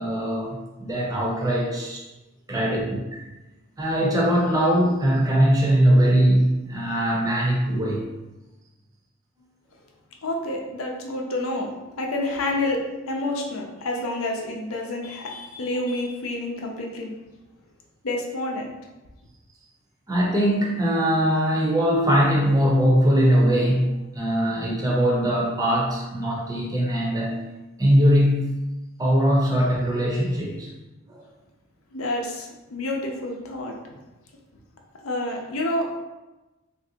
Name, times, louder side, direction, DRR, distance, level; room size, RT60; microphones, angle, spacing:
voice 1, 0.0-2.0 2.5-3.2 3.8-8.0 20.1-27.4 27.8-28.6 29.0-30.7 31.1-31.2, equal, 15° right, -3 dB, 0.6 m, -21 dB
voice 2, 10.2-11.7 12.0-12.8 13.1-17.1 18.0-18.7 31.9-33.8 35.0-36.0, left 2 dB, 70° left, 1 dB, 0.6 m, -28 dB
3.3 x 2.6 x 2.7 m, 1.1 s
head